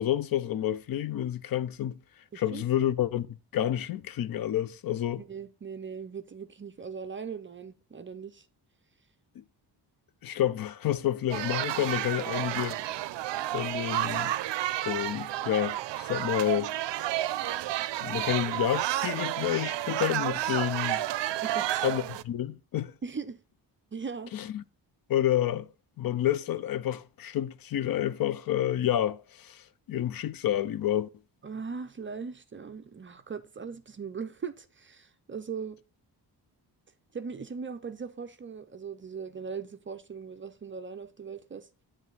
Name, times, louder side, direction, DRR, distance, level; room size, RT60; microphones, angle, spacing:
voice 1, 0.0-2.0 2.3-5.2 10.2-12.8 13.5-14.3 14.8-16.7 18.0-21.0 21.8-22.9 24.3-24.6 25.1-25.7 26.0-31.1, left 11 dB, 55° left, 0.5 m, -29 dB
voice 2, 2.3-2.6 5.2-8.5 21.4-22.0 23.0-23.4 23.9-24.3 31.4-35.8 37.1-41.7, right 5 dB, 30° right, 0.4 m, -39 dB
sound 1, 11.3-22.2, right 14 dB, 90° right, 0.5 m, -31 dB
9.4 x 3.2 x 5.4 m
wide cardioid pair, 175°, 42 cm